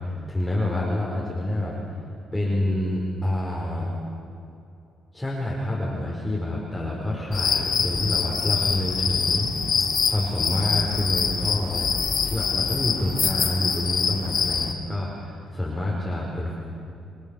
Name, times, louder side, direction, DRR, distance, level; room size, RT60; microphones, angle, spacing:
voice 1, 0.0-1.8 2.3-3.9 5.1-9.7 10.0-11.9 12.2-16.6, left 1 dB, 5° left, -5 dB, 4.8 m, -27 dB
sound 1, 7.3-14.7, left 6 dB, 45° left, 2.6 m, -25 dB
30.0 x 22.5 x 7.2 m, 2.6 s
cardioid pair, 130°, 0 cm